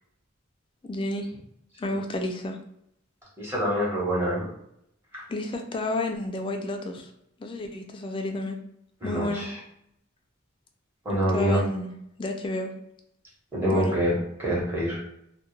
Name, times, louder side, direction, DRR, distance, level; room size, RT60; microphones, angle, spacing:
voice 1, 0.8-1.3 1.8-2.6 5.3-7.1 7.4-8.6 9.0-9.5 11.3-11.9 12.2-12.7 13.7-14.0, left 1 dB, 25° left, 4 dB, 0.3 m, -30 dB
voice 2, 3.4-4.5 5.1-5.2 9.0-9.6 11.0-11.6 13.5-15.0, equal, 10° right, -6 dB, 0.9 m, -26 dB
2.2 x 2.2 x 3.0 m, 0.77 s
head